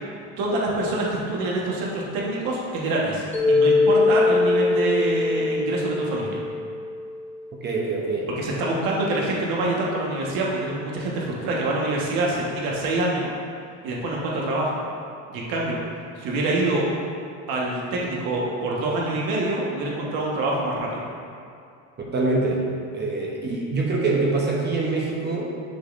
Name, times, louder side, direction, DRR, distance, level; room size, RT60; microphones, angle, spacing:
voice 1, 0.4-6.4 8.4-13.3 13.8-14.8 15.3-15.8 16.2-16.9 17.5-21.0, right 2 dB, 75° right, -3 dB, 1.4 m, -26 dB
Mallet percussion, 3.3-7.5, left 3 dB, 5° left, 1.0 m, -22 dB
voice 2, 7.6-8.3 22.1-22.7 22.9-25.5, right 3 dB, 30° right, -2 dB, 0.7 m, -24 dB
6.8 x 6.0 x 2.5 m, 2.4 s
cardioid pair, 130°, 36 cm